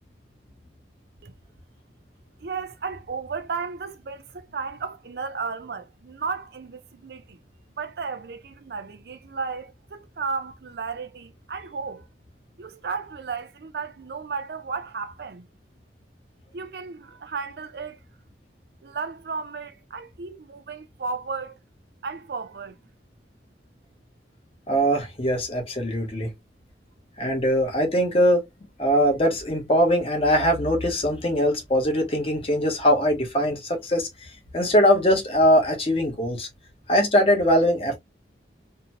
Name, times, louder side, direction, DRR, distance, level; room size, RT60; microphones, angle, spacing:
voice 1, 2.4-7.4 7.8-12.1 12.6-15.5 16.5-18.0 18.8-21.6 22.0-22.8, right 5 dB, 65° right, 0.5 m, -34 dB
voice 2, 24.7-26.3 27.2-28.4 28.8-36.5 36.9-38.0, equal, 30° left, 0.8 m, -21 dB
2.8 x 2.1 x 2.8 m
head